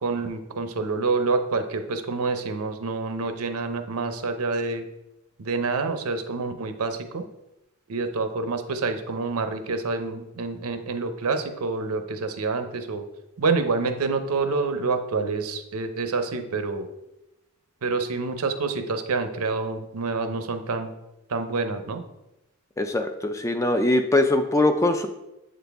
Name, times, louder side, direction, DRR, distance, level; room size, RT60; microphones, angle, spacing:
voice 1, 0.0-4.9 5.4-7.2 7.9-13.0 13.4-16.9 17.8-20.9 21.3-22.0, right 4 dB, 80° right, 8 dB, 0.6 m, -27 dB
voice 2, 22.8-25.1, left 2 dB, 15° left, 7 dB, 0.3 m, -22 dB
7.7 x 4.0 x 3.4 m, 0.93 s
head